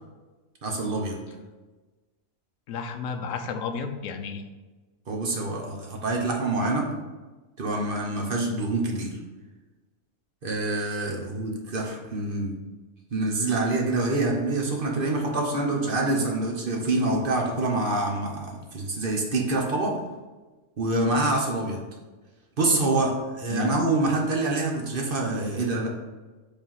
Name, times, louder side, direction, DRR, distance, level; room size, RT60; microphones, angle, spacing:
voice 1, 0.6-1.2 5.1-6.9 7.6-9.1 10.4-12.5 13.1-20.0 20.8-21.8 22.6-25.9, right 2 dB, 40° right, 0 dB, 1.1 m, -26 dB
voice 2, 2.7-4.4 23.5-23.8, left 6 dB, 70° left, 6 dB, 1.0 m, -32 dB
5.1 x 3.7 x 5.5 m, 1.2 s
omnidirectional pair, 1.5 m